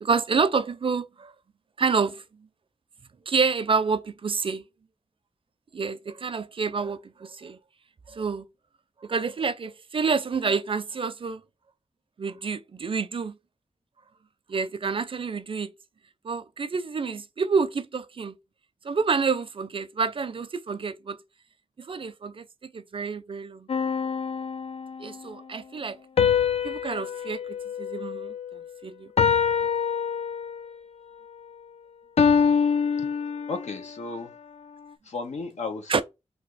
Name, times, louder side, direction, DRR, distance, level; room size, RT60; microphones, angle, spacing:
voice 1, 0.0-1.3 1.8-2.5 3.3-4.6 5.7-7.6 8.1-8.4 9.1-11.4 12.2-13.4 14.5-15.7 16.2-18.3 18.8-21.2 21.8-23.7 25.0-26.0 26.6-29.1 35.9-36.0, right 5 dB, 50° right, 0.5 m, -28 dB
sound 1, 23.7-25.1 26.2-28.7 29.2-30.8 32.2-33.9, left 7 dB, 65° left, 0.4 m, -25 dB
voice 2, 33.5-34.3 35.0-36.0, left 4 dB, 85° left, 1.0 m, -34 dB
3.4 x 2.7 x 4.5 m
wide cardioid pair, 80°, 12 cm